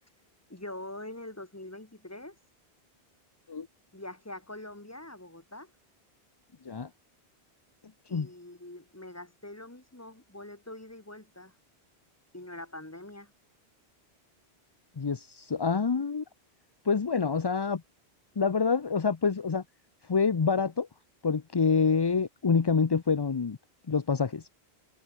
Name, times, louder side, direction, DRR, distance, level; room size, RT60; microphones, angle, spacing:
voice 1, 0.5-2.4 3.9-5.7 8.1-11.5 12.3-13.3, left 1 dB, 15° left, 1.8 m, -44 dB
voice 2, 15.0-16.2 16.8-17.8 18.4-19.6 20.1-20.9 21.2-23.6 23.9-24.4, left 5 dB, 30° left, 0.5 m, -26 dB
omnidirectional pair, 1.1 m